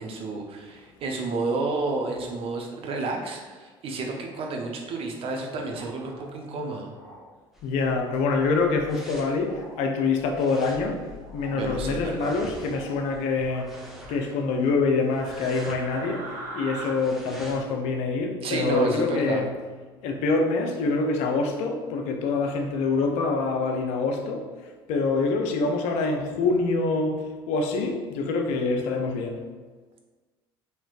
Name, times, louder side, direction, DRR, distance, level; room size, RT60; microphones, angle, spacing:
voice 1, 0.0-6.9 11.5-12.3 18.4-19.4, right 3 dB, 50° right, 2 dB, 0.6 m, -31 dB
sound 1, 5.6-6.2 6.9-7.2 8.0-8.5 9.4-9.8 10.2-10.8 11.2-11.6 12.6-13.0 13.4-14.3 15.2-16.9, right 2 dB, 65° right, 1.1 m, -42 dB
sound 2, 7.5-17.7, left 1 dB, ahead, 0.7 m, -45 dB
voice 2, 7.6-13.8 14.1-19.5 20.0-24.5 24.9-29.4, left 3 dB, 65° left, 4 dB, 0.5 m, -25 dB
3.1 x 2.9 x 2.3 m, 1.3 s
hypercardioid pair, 65°, 12 cm